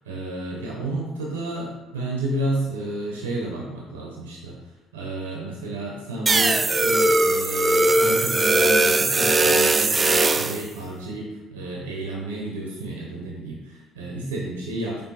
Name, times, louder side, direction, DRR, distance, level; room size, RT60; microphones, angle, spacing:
voice 1, 0.1-4.6 4.9-15.0, right 1 dB, 90° right, -2 dB, 0.7 m, -31 dB
sound 1, 6.3-10.6, right 2 dB, 30° right, 0.4 m, -19 dB
4.8 x 2.6 x 4.0 m, 1.1 s
hypercardioid pair, 55°, 0 cm